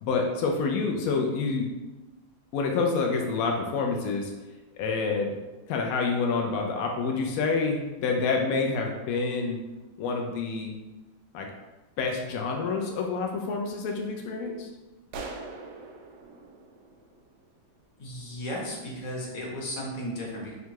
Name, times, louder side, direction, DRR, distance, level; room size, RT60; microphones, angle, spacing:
voice 1, 0.0-1.7 2.5-4.3 4.8-5.4 5.7-9.6 10.0-10.7 11.3-11.5 12.0-14.7, left 4 dB, 80° left, 1 dB, 0.7 m, -27 dB
sound 1, 15.1-17.7, right 3 dB, 75° right, 1.2 m, -42 dB
voice 2, 18.0-20.6, equal, 55° left, -3 dB, 1.3 m, -35 dB
3.8 x 2.2 x 4.5 m, 1.1 s
omnidirectional pair, 2.0 m